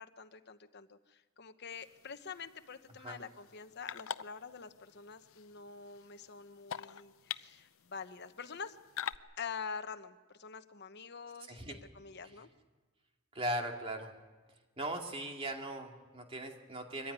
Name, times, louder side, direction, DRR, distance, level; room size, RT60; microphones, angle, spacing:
voice 1, 0.0-8.8 9.4-12.5, left 6 dB, 50° left, 9 dB, 1.0 m, -46 dB
sound 1, 1.7-9.2, left 8 dB, 70° left, 0.6 m, -46 dB
voice 2, 13.3-14.1 14.8-17.1, right 1 dB, 25° right, 2 dB, 2.5 m, -39 dB
23.0 x 15.0 x 9.7 m, 1.3 s
head